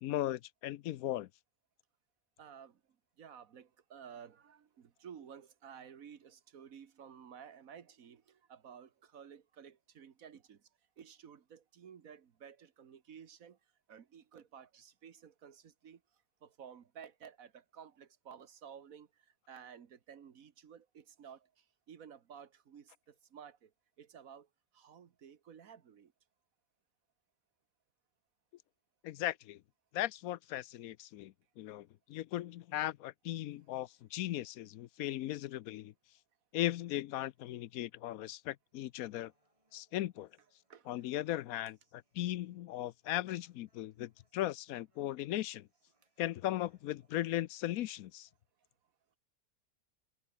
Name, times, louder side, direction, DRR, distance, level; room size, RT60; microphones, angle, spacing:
voice 1, 0.0-1.3 29.0-29.6 29.9-35.9 36.5-39.3 39.7-40.3 40.9-45.7 46.2-48.3, left 14 dB, 75° left, 1.0 m, -37 dB
voice 2, 2.4-2.8 3.2-10.7 11.0-13.6 13.9-16.0 16.4-23.7 24.0-24.5 24.7-26.1 40.7-41.0, right 7 dB, 70° right, 1.6 m, -54 dB
Human voice, 39.2-47.2, right 1 dB, 20° right, 7.6 m, -80 dB
omnidirectional pair, 1.5 m